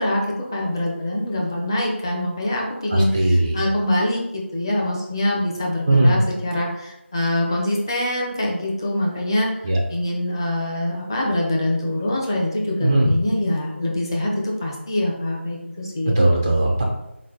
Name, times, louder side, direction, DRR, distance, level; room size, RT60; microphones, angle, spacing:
voice 1, 0.0-16.2, left 1 dB, 20° left, -2 dB, 0.7 m, -24 dB
voice 2, 2.9-3.6 5.9-6.2 9.6-9.8 12.8-13.1 16.2-16.8, right 1 dB, 10° right, -2 dB, 0.3 m, -18 dB
3.8 x 3.2 x 3.9 m, 0.88 s
figure-of-eight pair, 170°, 7 cm